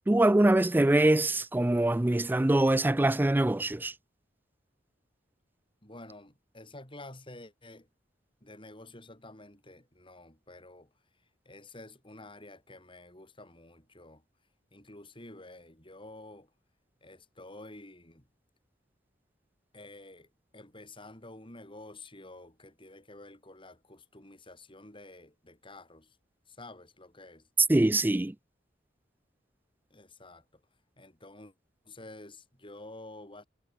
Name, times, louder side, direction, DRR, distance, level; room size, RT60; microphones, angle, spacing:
voice 1, 0.1-3.9 27.7-28.3, right 1 dB, 10° right, 0.4 m, -24 dB
voice 2, 5.8-7.9 8.4-10.9 11.5-14.2 14.7-16.5 17.0-18.3 19.7-26.2 26.5-27.5 29.9-30.6 31.0-31.5 31.8-33.4, left 2 dB, 30° left, 7.3 m, -50 dB
head